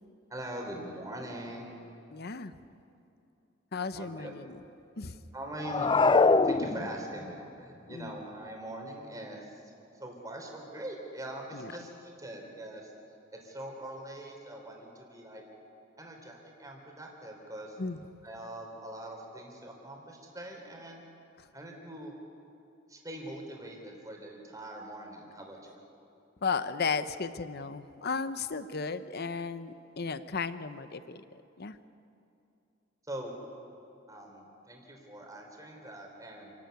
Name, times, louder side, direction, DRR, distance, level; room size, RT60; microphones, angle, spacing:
voice 1, 0.3-1.8 3.9-4.3 5.3-12.9 13.3-15.4 16.0-17.8 18.2-21.0 21.5-22.1 22.9-25.8 33.1-33.4 34.1-36.5, right 1 dB, 20° right, 1 dB, 3.9 m, -43 dB
voice 2, 2.1-2.5 3.7-4.6 5.0-5.2 7.9-8.2 11.5-11.7 17.8-18.0 21.4-21.5 26.4-31.8, left 5 dB, 55° left, 13 dB, 0.8 m, -35 dB
sound 1, 5.6-7.3, left 3 dB, 25° left, 0.5 m, -23 dB
28.5 x 12.5 x 9.3 m, 2.7 s
head